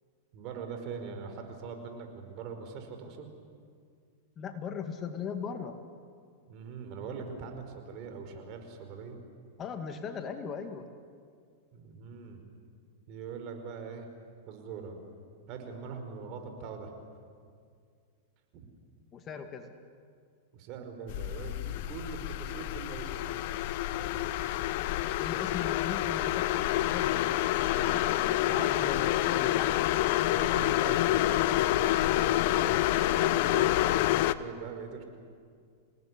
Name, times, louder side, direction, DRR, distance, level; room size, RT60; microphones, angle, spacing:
voice 1, 0.3-3.3 6.5-9.2 11.7-12.4 13.1-14.1 14.5-15.0 15.5-16.9 18.5-18.6 20.5-23.3 23.9-24.0 24.5-24.7 27.6-28.0 28.4-28.9 30.2-35.0, right 5 dB, 45° right, 5 dB, 5.0 m, -42 dB
voice 2, 4.4-5.7 9.6-10.9 19.1-19.7 25.0-27.4 27.7-29.9, left 6 dB, 30° left, 6 dB, 2.2 m, -39 dB
sound 1, 21.1-34.3, left 14 dB, 60° left, 0.9 m, -28 dB
28.0 x 19.0 x 9.8 m, 2.2 s
hypercardioid pair, 130°, 0 cm